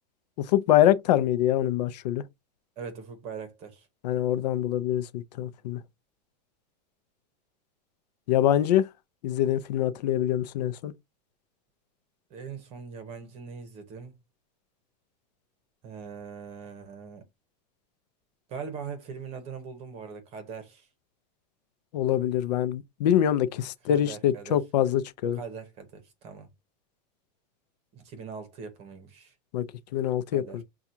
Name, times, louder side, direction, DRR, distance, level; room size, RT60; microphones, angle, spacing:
voice 1, 0.5-2.2 4.0-5.8 8.3-8.9 9.2-10.9 21.9-25.4 29.5-29.6 29.9-30.6, left 11 dB, 75° left, 0.5 m, -24 dB
voice 2, 2.8-3.9 12.3-14.2 15.8-17.2 18.5-20.9 23.9-24.6 25.3-26.5 27.9-29.3 30.3-30.6, right 6 dB, 30° right, 1.0 m, -41 dB
5.9 x 2.4 x 2.7 m
supercardioid pair, 170°, 21 cm